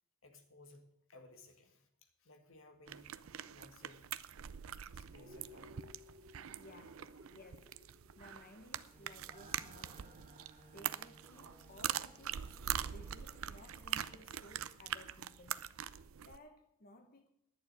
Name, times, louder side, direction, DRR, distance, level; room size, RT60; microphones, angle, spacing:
voice 1, 0.2-3.1 3.5-4.1 4.9-5.8 7.0-7.1, left 2 dB, 70° left, 1.8 m, -60 dB
sound 1, 2.9-16.4, right 10 dB, 80° right, 0.5 m, -43 dB
sound 2, 5.1-13.0 13.4-13.5, left 1 dB, 35° right, 2.3 m, -62 dB
voice 2, 6.4-7.0 7.3-7.7 8.2-10.4 10.7-12.5 12.9-15.7 16.2-17.3, left 1 dB, 40° left, 1.0 m, -58 dB
sound 3, 8.9-14.2, right 1 dB, 10° left, 3.9 m, -63 dB
11.0 x 7.0 x 9.2 m
head